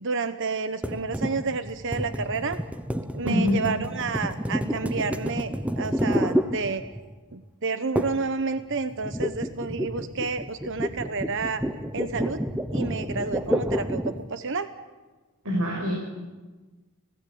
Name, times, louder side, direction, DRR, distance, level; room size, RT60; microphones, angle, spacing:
voice 1, 0.0-2.6 3.1-6.8 7.3-11.6 11.9-12.4 12.7-14.7, right 4 dB, 60° right, 10 dB, 1.0 m, -30 dB
sound 1, 0.8-7.2 8.0-8.3 8.6-14.3, equal, 5° right, 0.9 m, -29 dB
voice 2, 3.2-3.6 15.4-15.9, left 1 dB, 85° right, -1 dB, 5.8 m, -24 dB
30.0 x 17.5 x 8.7 m, 1.3 s
head